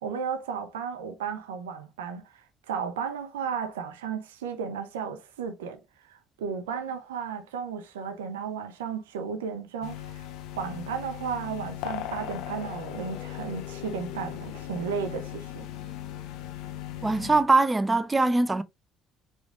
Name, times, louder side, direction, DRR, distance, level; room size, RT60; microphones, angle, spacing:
voice 1, 0.0-10.3 10.6-15.7, right 6 dB, 80° right, 0.6 m, -34 dB
sound 1, 9.8-17.4, left 12 dB, 65° left, 0.5 m, -38 dB
voice 2, 17.0-18.6, right 3 dB, 20° right, 0.5 m, -22 dB
4.9 x 2.4 x 3.4 m
figure-of-eight pair, 50°, 0 cm